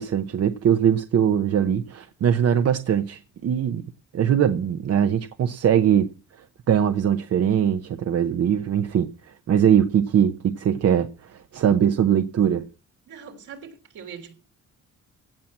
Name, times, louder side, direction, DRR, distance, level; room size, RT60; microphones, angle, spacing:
voice 1, 0.0-3.8 4.1-6.1 6.4-12.6, right 9 dB, 55° right, 0.9 m, -21 dB
voice 2, 13.1-14.3, right 6 dB, 80° right, 3.3 m, -41 dB
16.5 x 5.9 x 7.4 m
cardioid pair, 90°, 30 cm